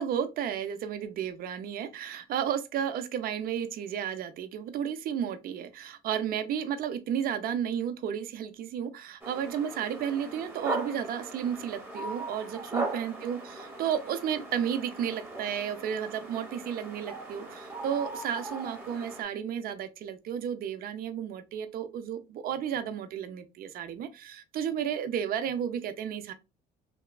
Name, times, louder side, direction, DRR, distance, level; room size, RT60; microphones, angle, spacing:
voice 1, 0.0-26.3, right 9 dB, 60° right, 0.5 m, -33 dB
sound 1, 9.2-19.2, right 2 dB, 15° right, 0.8 m, -39 dB
2.8 x 2.3 x 2.2 m
cardioid pair, 110°, 17 cm